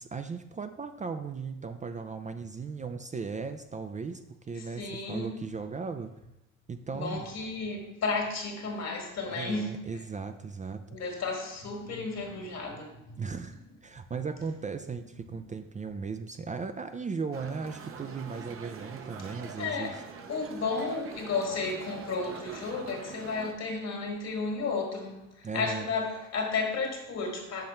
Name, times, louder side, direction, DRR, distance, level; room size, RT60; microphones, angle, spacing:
voice 1, 0.0-6.1 6.7-7.3 9.3-10.8 13.2-19.9 25.4-25.9, right 5 dB, 25° right, 0.4 m, -37 dB
voice 2, 4.6-5.4 6.9-9.8 10.9-13.2 19.6-20.0 20.3-27.6, left 4 dB, 60° left, 1.7 m, -33 dB
sound 1, 17.3-23.5, right 5 dB, 45° right, 0.8 m, -44 dB
5.8 x 5.2 x 4.3 m
cardioid pair, 90°, 30 cm